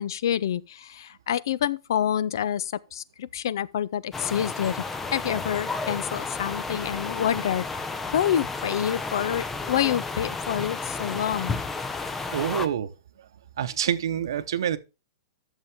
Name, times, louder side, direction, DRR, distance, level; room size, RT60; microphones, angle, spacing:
voice 1, 0.0-11.6, left 10 dB, 65° left, 0.6 m, -28 dB
sound 1, 4.1-12.7, left 4 dB, 10° left, 0.5 m, -32 dB
voice 2, 12.3-12.9 13.6-14.8, right 9 dB, 75° right, 1.0 m, -27 dB
11.0 x 7.2 x 3.6 m
supercardioid pair, 170°, 2 cm